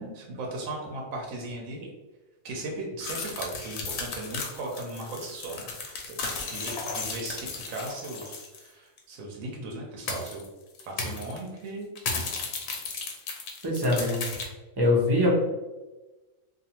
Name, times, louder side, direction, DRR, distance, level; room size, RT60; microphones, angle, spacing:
voice 1, 0.0-1.9 2.4-10.5 10.9-11.9, right 2 dB, 75° right, -1 dB, 1.0 m, -37 dB
sound 1, 3.0-8.7 9.0-9.1 10.1-10.5 10.8-11.4 12.0-14.5, left 4 dB, 65° left, 0.7 m, -35 dB
voice 2, 13.6-14.2 14.8-15.3, left 1 dB, 40° right, -4 dB, 0.3 m, -23 dB
2.4 x 2.3 x 2.8 m, 1.1 s
omnidirectional pair, 1.4 m